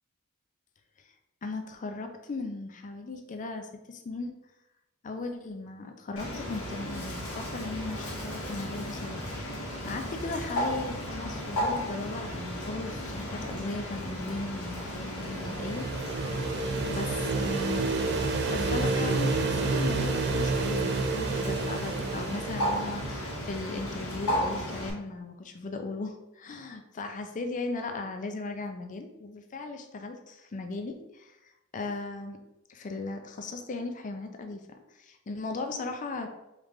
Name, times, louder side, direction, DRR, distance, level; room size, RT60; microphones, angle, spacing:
voice 1, 1.4-4.4 5.0-15.9 16.4-17.9 18.4-32.4 32.7-36.3, left 3 dB, 35° left, 5 dB, 0.4 m, -37 dB
Bird, 6.2-24.9, equal, 85° left, 1.1 m, -35 dB
sound 1, 14.7-23.5, right 3 dB, 50° right, 0.4 m, -30 dB
3.7 x 3.2 x 3.5 m, 0.91 s
head